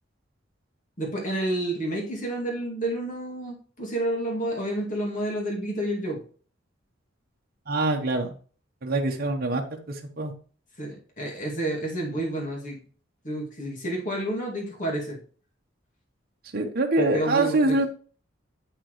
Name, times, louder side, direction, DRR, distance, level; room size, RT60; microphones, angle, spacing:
voice 1, 1.0-6.2 10.8-12.8 13.2-15.2 17.0-17.9, right 1 dB, 45° left, -2 dB, 2.4 m, -30 dB
voice 2, 7.7-8.3 8.8-9.6 10.2-10.3 16.5-17.9, right 2 dB, 50° right, 2 dB, 1.0 m, -24 dB
8.0 x 6.1 x 3.1 m, 0.41 s
head